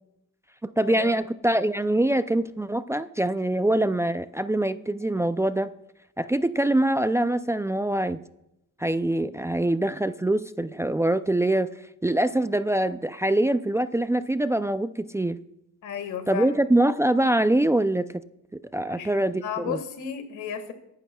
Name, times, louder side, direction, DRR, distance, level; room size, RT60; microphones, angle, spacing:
voice 1, 0.6-5.7 6.2-8.2 8.8-11.7 12.0-15.4 16.3-18.1 18.5-19.8, right 1 dB, 10° right, 12 dB, 0.4 m, -24 dB
voice 2, 15.8-16.5 18.9-20.7, left 8 dB, 80° left, 8 dB, 1.8 m, -33 dB
23.0 x 11.5 x 2.3 m, 0.83 s
cardioid pair, 90°, 30 cm